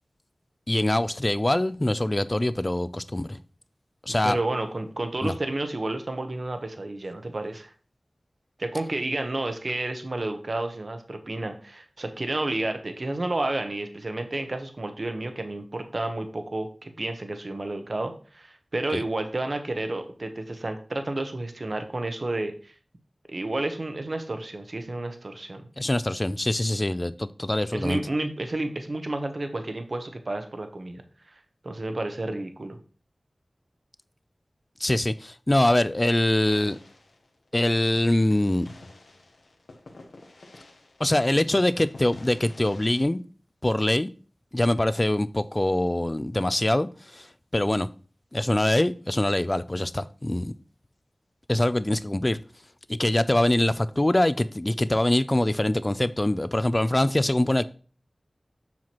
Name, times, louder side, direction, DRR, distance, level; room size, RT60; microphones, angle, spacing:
voice 1, 0.7-3.4 4.1-4.4 5.2-5.3 18.9-19.0 25.8-28.0 34.8-36.8 37.5-38.7 41.0-43.2 43.6-44.1 44.5-47.3 47.5-47.9 48.3-50.5 51.5-52.4 52.9-57.6, left 1 dB, 25° left, 0.3 m, -24 dB
voice 2, 4.2-7.7 8.6-22.7 23.3-25.7 27.7-31.0 31.6-32.8, right 2 dB, 55° right, 0.9 m, -31 dB
sound 1, 36.4-41.2 41.5-43.0, left 2 dB, 90° left, 1.0 m, -48 dB
7.3 x 5.7 x 3.0 m
wide cardioid pair, 70°, 0 cm